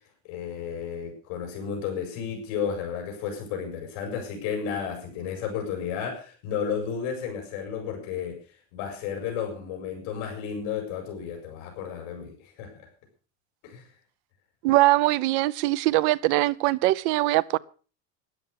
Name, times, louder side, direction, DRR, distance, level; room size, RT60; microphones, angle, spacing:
voice 1, 0.2-8.4 8.7-12.7 13.6-13.9, left 7 dB, 60° left, 5.5 m, -32 dB
voice 2, 14.6-17.6, right 18 dB, 65° right, 0.8 m, -22 dB
13.0 x 11.0 x 6.4 m
cardioid pair, 170°, 35 cm